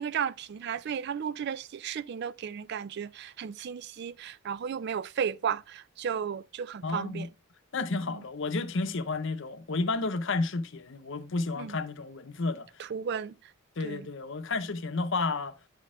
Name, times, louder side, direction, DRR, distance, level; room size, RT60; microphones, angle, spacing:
voice 1, 0.0-7.3 11.6-11.8 12.8-13.3 13.8-14.1, right 7 dB, 50° right, 0.3 m, -34 dB
voice 2, 6.8-7.3 7.7-12.8 13.8-15.6, left 3 dB, 60° left, 0.7 m, -31 dB
10.0 x 4.2 x 3.6 m
head